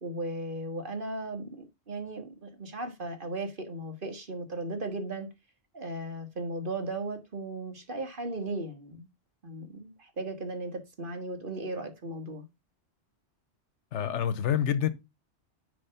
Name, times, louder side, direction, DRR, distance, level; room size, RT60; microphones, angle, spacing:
voice 1, 0.0-1.5 1.9-5.3 5.7-9.1 9.4-12.5, right 2 dB, 50° right, 1.7 m, -36 dB
voice 2, 13.9-14.9, left 9 dB, 85° left, 1.1 m, -27 dB
10.0 x 3.5 x 5.6 m
omnidirectional pair, 1.2 m